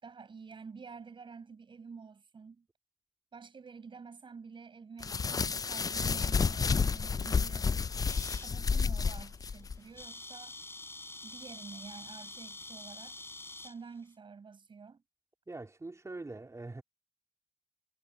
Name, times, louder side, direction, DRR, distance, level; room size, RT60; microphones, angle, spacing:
voice 1, 0.0-2.7 3.3-7.9 8.4-10.6 11.2-13.2 13.6-15.0, right 5 dB, 80° right, 5.6 m, -49 dB
sound 1, 5.0-9.8, left 5 dB, 45° left, 0.3 m, -30 dB
sound 2, 8.1-8.5 9.1-9.3 9.5-9.6 9.8-13.8, left 2 dB, 30° left, 4.9 m, -46 dB
voice 2, 15.5-16.8, right 2 dB, 35° right, 3.4 m, -43 dB
wide cardioid pair, 70°, 8 cm